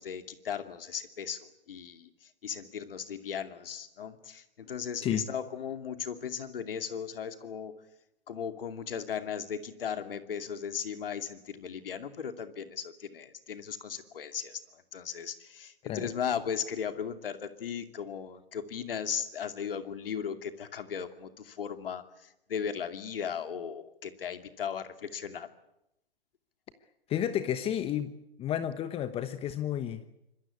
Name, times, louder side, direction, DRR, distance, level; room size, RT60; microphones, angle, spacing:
voice 1, 0.0-7.7 8.3-25.5, left 7 dB, 65° left, 8 dB, 2.6 m, -37 dB
voice 2, 27.1-28.1 28.4-30.2, left 10 dB, 20° left, 12 dB, 1.1 m, -31 dB
25.5 x 22.5 x 8.5 m, 0.85 s
hypercardioid pair, 125°, 30 cm